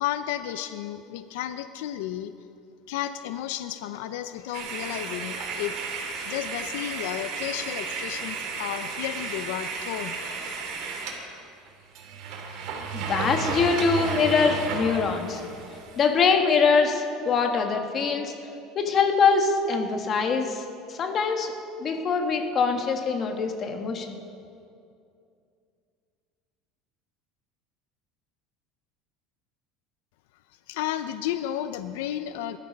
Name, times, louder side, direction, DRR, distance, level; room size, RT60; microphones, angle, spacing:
voice 1, 0.0-2.3 2.9-5.7 6.2-10.2 30.7-32.6, left 12 dB, 85° left, 11 dB, 0.6 m, -32 dB
sound 1, 4.5-11.2 11.7-11.8 11.9-16.1, right 4 dB, 55° right, 3.0 m, -33 dB
voice 2, 12.9-15.4 16.0-18.3 18.7-20.6 20.9-21.5 21.8-24.2, left 5 dB, 30° left, 4 dB, 1.5 m, -23 dB
20.0 x 12.5 x 5.3 m, 2.5 s
cardioid pair, 150°, 0 cm